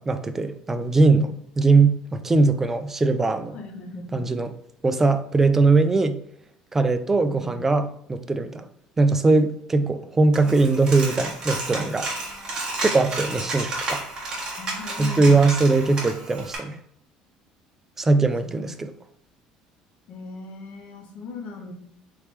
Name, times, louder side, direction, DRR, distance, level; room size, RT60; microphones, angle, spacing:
voice 1, 0.0-3.6 4.1-4.5 4.8-6.2 6.7-8.7 9.0-12.1 12.8-14.0 15.0-16.8 18.0-18.9, right 3 dB, 15° right, 0.3 m, -20 dB
voice 2, 3.5-4.3 7.2-7.6 14.6-15.5 18.4-18.5 18.8-18.9 20.1-21.7, left 3 dB, 55° left, 1.0 m, -38 dB
Coin (dropping), 10.3-16.6, right 2 dB, 35° right, 1.4 m, -31 dB
4.1 x 3.2 x 3.3 m
cardioid pair, 125°, 2 cm